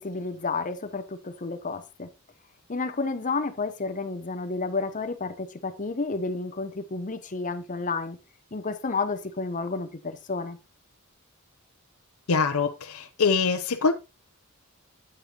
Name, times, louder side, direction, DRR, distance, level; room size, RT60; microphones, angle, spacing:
voice 1, 0.0-2.1 2.7-8.2 8.5-10.6, left 3 dB, 35° left, 0.8 m, -31 dB
voice 2, 12.3-13.9, left 4 dB, 70° left, 0.7 m, -24 dB
8.9 x 8.9 x 2.9 m
head